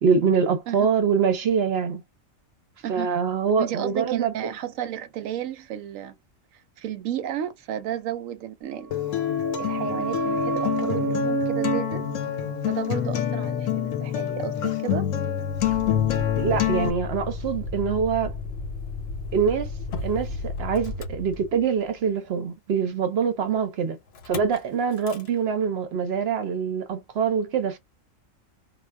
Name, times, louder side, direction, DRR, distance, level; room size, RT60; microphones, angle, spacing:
voice 1, 0.0-2.0 2.9-4.5 16.4-18.3 19.3-19.7 20.0-24.0 24.3-27.8, right 6 dB, 60° right, 0.8 m, -24 dB
voice 2, 3.6-6.2 6.5-8.9 9.6-12.1 12.7-15.1, right 10 dB, 90° right, 1.0 m, -33 dB
sound 1, 8.7-14.1 14.4-14.5, right 3 dB, 15° right, 0.8 m, -31 dB
Acoustic guitar, 8.9-16.9, left 10 dB, 80° left, 1.0 m, -26 dB
Motor vehicle (road), 15.5-21.9 24.1-24.6 24.9-25.3, left 3 dB, 60° left, 0.8 m, -34 dB
2.3 x 2.1 x 3.2 m
omnidirectional pair, 1.3 m